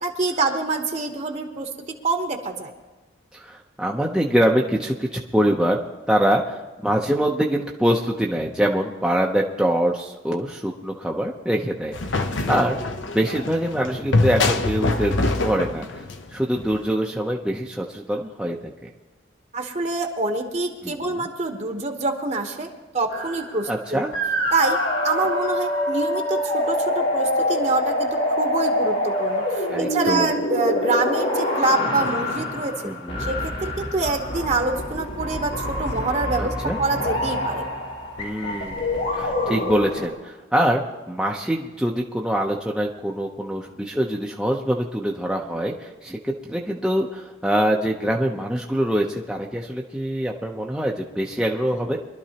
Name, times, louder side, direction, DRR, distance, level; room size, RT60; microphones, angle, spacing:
voice 1, 0.0-2.7 19.5-24.0 24.5-24.8 25.0-29.4 29.8-32.7 33.2-37.7, right 3 dB, 35° right, 4 dB, 1.0 m, -26 dB
voice 2, 3.3-5.8 6.1-11.9 12.5-12.8 13.1-16.0 16.3-18.9 20.8-20.9 23.7-24.1 29.7-30.3 32.8-33.3 36.4-36.8 38.2-38.8 39.1-52.0, equal, 5° right, -1 dB, 0.7 m, -24 dB
sound 1, 11.9-16.8, left 2 dB, 75° left, 0.9 m, -24 dB
sound 2, 23.1-23.8 24.1-40.1, left 1 dB, 90° left, 3.8 m, -26 dB
23.0 x 12.0 x 2.9 m, 1.2 s
head